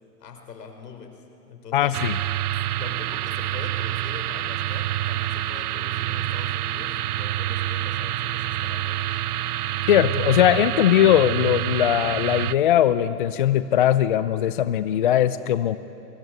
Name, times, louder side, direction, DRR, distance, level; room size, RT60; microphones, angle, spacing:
voice 1, 0.2-1.1 1.5-2.0 2.7-9.1, left 6 dB, 70° left, 5 dB, 5.0 m, -43 dB
voice 2, 1.7-2.2 9.9-15.8, left 11 dB, 35° left, 13 dB, 0.5 m, -20 dB
sound 1, 1.9-12.5, right 14 dB, 65° right, 0.7 m, -27 dB
23.5 x 23.5 x 9.3 m, 2.8 s
hypercardioid pair, 145°, 49 cm